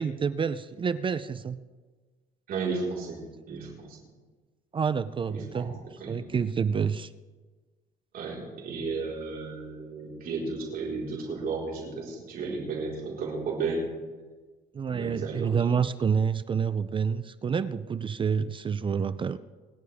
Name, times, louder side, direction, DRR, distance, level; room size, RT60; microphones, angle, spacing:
voice 1, 0.0-1.6 4.7-5.8 6.1-7.1 14.7-19.4, right 6 dB, 30° right, 14 dB, 0.5 m, -28 dB
voice 2, 2.5-3.2 3.5-4.0 5.3-5.7 6.0-6.2 8.1-13.9 14.9-15.5, right 4 dB, 60° right, -3 dB, 4.7 m, -33 dB
28.0 x 11.5 x 3.6 m, 1.4 s
cardioid pair, 110°, 17 cm